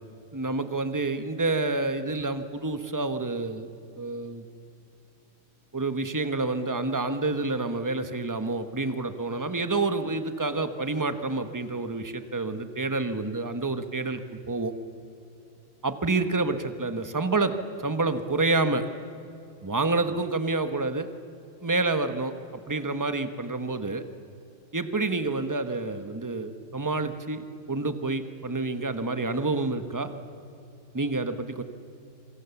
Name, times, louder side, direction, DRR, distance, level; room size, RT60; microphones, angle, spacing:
voice 1, 0.3-3.7 4.0-4.4 5.7-14.2 14.5-14.7 15.8-17.5 17.8-18.8 19.6-21.1 21.6-24.0 24.7-30.1 30.9-31.6, right 3 dB, 20° right, 9 dB, 0.6 m, -28 dB
27.0 x 25.0 x 7.1 m, 2.8 s
omnidirectional pair, 2.3 m